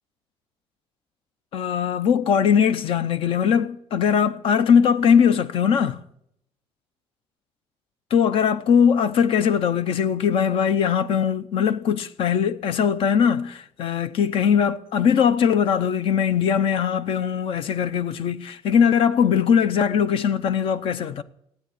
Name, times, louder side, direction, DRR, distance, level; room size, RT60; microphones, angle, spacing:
voice 1, 1.5-6.0 8.1-21.2, left 7 dB, 60° left, 0.8 m, -20 dB
17.0 x 9.2 x 8.6 m
cardioid pair, 145°, 11 cm